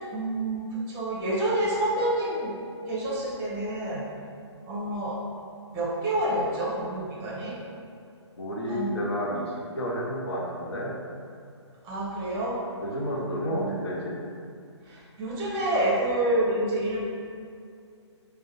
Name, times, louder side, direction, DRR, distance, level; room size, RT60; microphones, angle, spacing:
voice 1, 0.1-2.5 2.9-4.0 4.7-5.2 5.7-7.5 8.7-9.0 11.8-12.6 13.5-13.7 14.9-17.0, right 1 dB, 20° right, -5 dB, 0.7 m, -28 dB
voice 2, 8.4-10.9 12.8-14.1, equal, 60° left, -4 dB, 0.8 m, -31 dB
4.8 x 2.2 x 2.7 m, 2.4 s
figure-of-eight pair, 140°, 15 cm